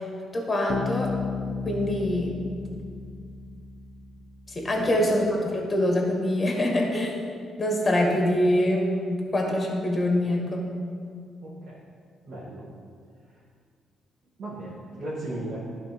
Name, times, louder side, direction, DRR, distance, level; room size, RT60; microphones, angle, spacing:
voice 1, 0.3-1.1 1.6-2.4 4.5-7.2 7.6-10.7, left 1 dB, 25° left, 0 dB, 2.0 m, -24 dB
Bass guitar, 0.7-4.4, left 5 dB, 55° left, 0.8 m, -33 dB
voice 2, 11.4-11.8 12.2-12.6 14.4-15.6, right 1 dB, 55° right, -10 dB, 2.4 m, -36 dB
11.0 x 4.4 x 5.5 m, 2.2 s
cardioid pair, 90°, 0 cm